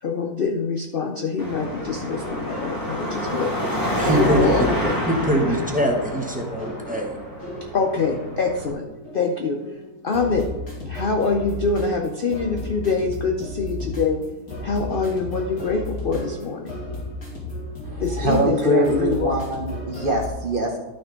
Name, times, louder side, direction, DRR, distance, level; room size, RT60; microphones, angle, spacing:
voice 1, 0.0-3.5 4.0-5.0 5.5-5.6 7.7-8.9 9.1-9.8 10.0-10.5 10.9-14.2 14.6-16.7 18.0-19.4, left 4 dB, 55° left, 3 dB, 0.6 m, -24 dB
Car passing by / Traffic noise roadway noise / Engine, 1.4-8.7, equal, 15° left, 1.4 m, -28 dB
sound 1, 1.9-20.3, left 1 dB, 85° left, 3.1 m, -35 dB
voice 2, 4.0-4.5 5.1-7.1, right 1 dB, 5° right, 2 dB, 0.8 m, -23 dB
voice 3, 17.8-20.8, right 1 dB, 40° right, 2 dB, 0.9 m, -23 dB
11.5 x 6.1 x 3.8 m, 1.0 s
omnidirectional pair, 1.6 m